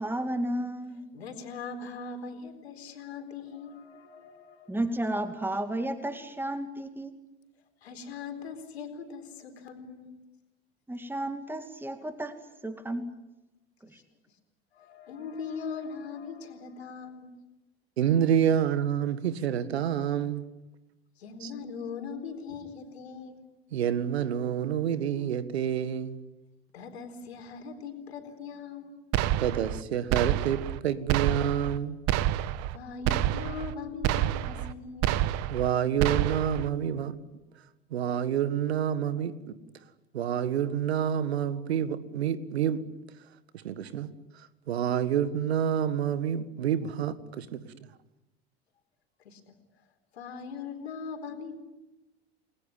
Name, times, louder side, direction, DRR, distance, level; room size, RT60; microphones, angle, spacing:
voice 1, 0.0-1.1 4.7-7.1 10.9-12.4 12.6-13.1 13.8-14.0, right 1 dB, 5° right, 2.5 m, -32 dB
voice 2, 1.1-4.8 7.8-10.2 14.7-17.4 21.2-23.4 26.7-29.1 32.7-35.1 49.2-49.5 50.1-51.5, left 5 dB, 75° left, 4.2 m, -40 dB
voice 3, 18.0-20.5 21.4-21.5 23.7-26.2 29.4-32.0 35.5-37.2 37.9-39.6 40.1-42.8 43.5-44.1 44.7-47.7, right 9 dB, 75° right, 1.8 m, -28 dB
sound 1, 29.1-29.8 30.1-30.8 31.1-31.8 32.1-32.8 33.0-33.7 34.0-34.7 35.0-35.7 36.0-36.7, right 13 dB, 50° right, 1.3 m, -28 dB
30.0 x 21.0 x 9.6 m
figure-of-eight pair, 75°, 32 cm